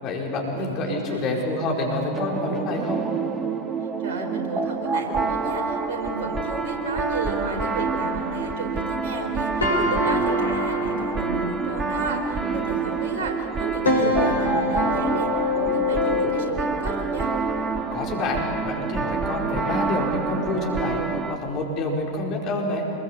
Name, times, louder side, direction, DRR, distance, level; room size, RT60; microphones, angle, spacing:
voice 1, 0.0-3.0 17.9-22.8, left 2 dB, 35° left, -1 dB, 4.8 m, -27 dB
voice 2, 0.5-1.4 4.0-15.3 15.5-17.3, right 3 dB, 55° right, 3 dB, 4.9 m, -32 dB
sound 1, 2.1-21.4, right 4 dB, 20° right, 1.9 m, -27 dB
sound 2, 6.8-8.7 9.2-9.3 9.6-12.9 13.5-16.7, left 2 dB, 75° left, 4.5 m, -27 dB
26.0 x 21.5 x 8.3 m, 2.6 s
figure-of-eight pair, 90°, 0 cm